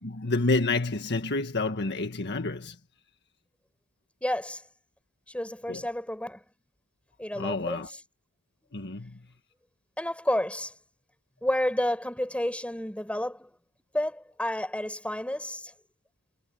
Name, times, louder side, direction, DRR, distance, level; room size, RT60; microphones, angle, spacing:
voice 1, 0.0-2.8 5.7-5.8 7.4-7.9 8.7-9.2, left 3 dB, 55° left, 1.7 m, -29 dB
voice 2, 4.2-4.6 5.3-6.4 7.2-8.0 10.0-10.7 11.4-13.5 13.9-15.7, left 1 dB, 5° left, 5.4 m, -30 dB
head